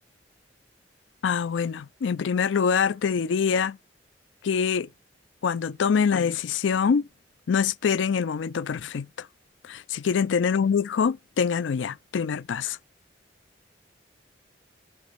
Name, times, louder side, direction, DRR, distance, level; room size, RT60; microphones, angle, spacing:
voice 1, 1.2-3.8 4.4-4.9 5.4-7.1 7.5-9.3 9.6-12.8, left 6 dB, 85° left, 0.4 m, -25 dB
10.0 x 5.1 x 4.6 m
head